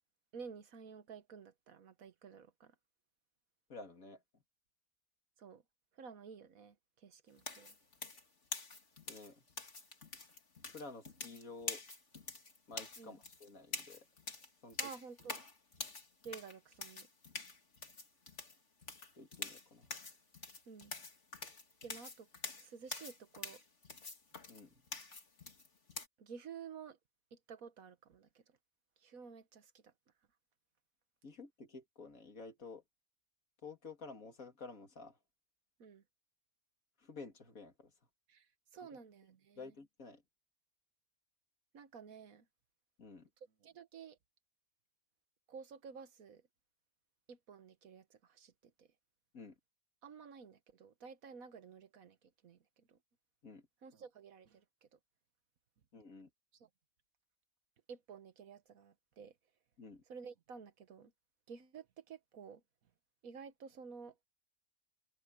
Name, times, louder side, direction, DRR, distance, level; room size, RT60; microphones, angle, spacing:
voice 1, 0.3-2.7 5.4-5.6 6.0-6.7 7.0-7.7 13.0-13.2 14.8-15.4 16.2-17.1 20.7-20.9 21.8-22.3 22.6-23.6 26.2-27.0 27.5-28.3 29.0-29.9 35.8-36.0 38.3-38.5 38.7-39.7 41.7-42.4 43.6-44.2 45.5-46.4 47.3-48.5 48.8-48.9 50.0-52.2 52.4-52.6 52.9-53.0 53.8-54.6 54.9-55.0 56.6-56.7 57.9-59.3 60.1-61.1 61.5-62.6 63.2-64.1, right 6 dB, 85° right, 1.7 m, -52 dB
voice 2, 3.7-4.2 9.1-9.4 10.7-11.8 12.7-14.1 14.6-14.9 19.2-19.9 24.5-24.7 31.2-32.8 33.6-35.2 37.0-37.9 39.6-40.2 43.0-43.3 49.3-49.5 53.4-53.6 55.9-56.3 59.8-60.0, left 4 dB, 80° left, 3.0 m, -51 dB
sound 1, 7.4-26.1, left 3 dB, 55° left, 2.9 m, -46 dB
omnidirectional pair, 1.4 m